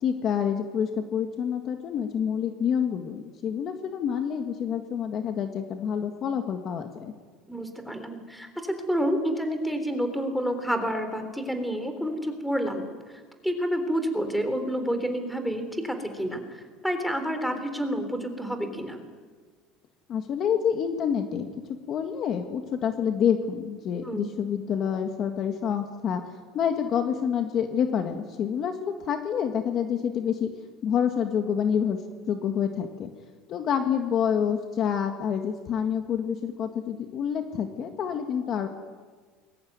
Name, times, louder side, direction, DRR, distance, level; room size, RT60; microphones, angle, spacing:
voice 1, 0.0-7.1 20.1-21.5 21.9-26.2 26.5-30.5 30.8-32.0 32.3-33.1 33.5-38.7, left 8 dB, 40° left, 6 dB, 1.9 m, -27 dB
voice 2, 7.5-12.9 13.4-19.0 24.0-24.2, equal, ahead, 7 dB, 3.6 m, -29 dB
28.0 x 22.0 x 9.6 m, 1.5 s
cardioid pair, 150°, 0 cm